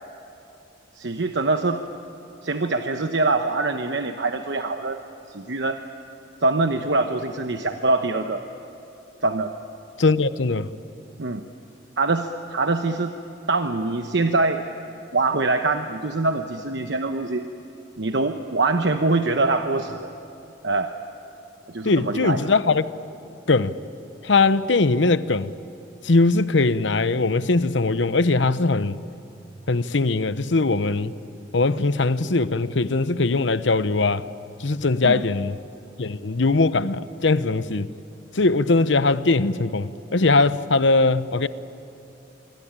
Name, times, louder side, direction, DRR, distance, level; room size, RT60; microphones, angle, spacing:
voice 1, 1.0-1.8 2.4-5.0 5.3-5.8 6.4-8.4 9.2-9.5 11.2-11.4 12.0-13.1 13.5-14.6 15.1-17.5 18.0-20.1 20.6-20.9 21.7-22.4 35.0-35.2, right 3 dB, 70° right, 1.0 m, -24 dB
voice 2, 10.0-10.7 21.8-22.8 23.5-23.7 24.2-25.5 26.0-29.0 29.7-31.2 31.5-34.2 34.6-35.6 36.0-37.9 38.3-41.5, left 3 dB, 80° left, 0.9 m, -20 dB
26.5 x 24.5 x 8.9 m
head